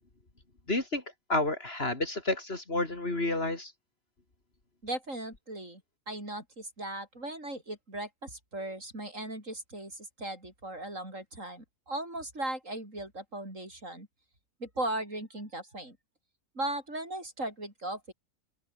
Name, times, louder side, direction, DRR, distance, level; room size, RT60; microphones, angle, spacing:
voice 1, 0.7-1.0 1.3-3.7, left 2 dB, 40° left, 3.4 m, -30 dB
voice 2, 4.8-5.8 6.1-14.1 14.6-16.0 16.5-18.1, right 1 dB, 60° right, 8.3 m, -37 dB
open air
omnidirectional pair, 1.5 m